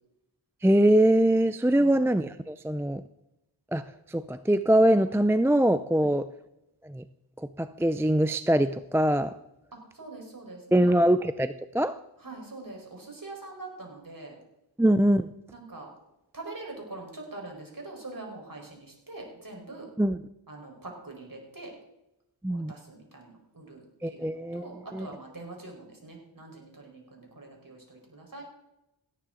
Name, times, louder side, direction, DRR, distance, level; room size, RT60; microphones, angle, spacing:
voice 1, 0.6-3.0 3.7-6.3 6.8-7.0 7.4-9.4 10.7-12.0 14.8-15.3 20.0-20.2 22.4-22.7 24.0-24.6 24.9-25.1, right 1 dB, 5° right, 12 dB, 0.4 m, -23 dB
voice 2, 9.9-10.9 12.2-14.4 15.5-15.9 16.3-19.9 20.5-21.7 22.5-28.4, right 2 dB, 45° right, 0 dB, 4.6 m, -44 dB
17.5 x 9.8 x 3.8 m, 0.88 s
cardioid pair, 45°, 48 cm